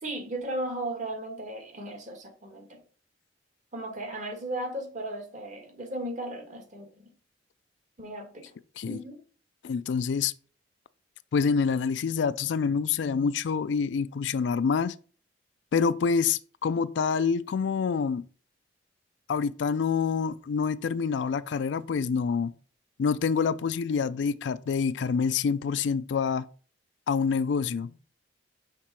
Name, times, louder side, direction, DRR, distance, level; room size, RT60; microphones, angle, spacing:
voice 1, 0.0-2.8 3.7-7.1 8.0-8.5 8.9-9.2, right 1 dB, 45° right, 1.5 m, -36 dB
voice 2, 9.6-10.3 11.3-14.9 15.7-18.2 19.3-22.5 23.0-26.5 27.1-28.0, left 5 dB, 70° left, 0.4 m, -27 dB
5.8 x 3.7 x 4.6 m
head